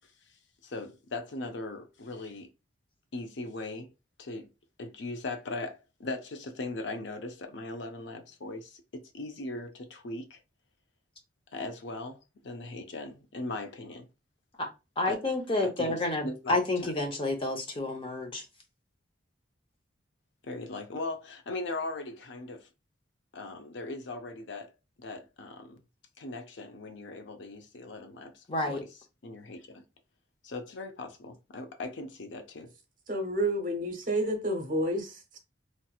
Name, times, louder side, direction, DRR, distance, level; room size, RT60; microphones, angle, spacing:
voice 1, 0.6-2.5 3.1-3.9 4.2-4.5 4.8-10.4 11.5-14.1 15.1-15.2 15.6-16.9 20.4-22.7 23.3-24.7 25.0-25.8 26.2-28.9 29.2-29.8 30.4-32.7, left 2 dB, 70° left, 0.6 m, -39 dB
voice 2, 15.0-18.4 28.5-28.8, left 2 dB, 30° left, 0.8 m, -29 dB
voice 3, 33.1-35.4, right 1 dB, 50° right, 0.9 m, -30 dB
3.1 x 2.9 x 2.3 m
head